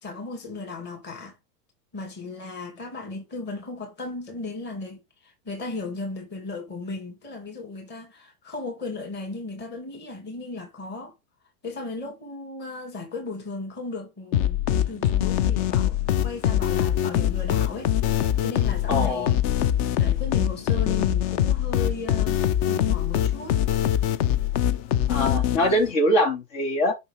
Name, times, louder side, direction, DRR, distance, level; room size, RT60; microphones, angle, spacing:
voice 1, 0.0-1.4 1.9-11.1 11.6-19.4 19.8-22.4 22.7-23.6, left 3 dB, 25° left, 2.6 m, -36 dB
sound 1, 14.3-25.9, left 11 dB, 40° left, 0.7 m, -23 dB
voice 2, 18.9-19.3 25.1-26.9, equal, 60° left, 3.5 m, -23 dB
5.8 x 5.5 x 3.5 m
hypercardioid pair, 110°, 45 cm